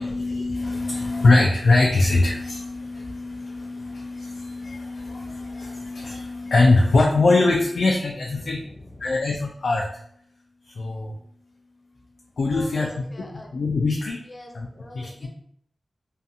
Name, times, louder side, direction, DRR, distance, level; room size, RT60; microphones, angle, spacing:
voice 1, 0.0-8.6 9.0-9.9 10.7-11.1 12.4-12.9 13.5-14.2 14.5-14.7 14.9-15.3, left 3 dB, 85° left, -1 dB, 0.3 m, -22 dB
voice 2, 8.3-9.2 12.5-13.6 14.2-15.3, left 1 dB, 40° left, 0 dB, 0.6 m, -43 dB
2.6 x 2.3 x 2.6 m, 0.67 s
wide cardioid pair, 65°, 0 cm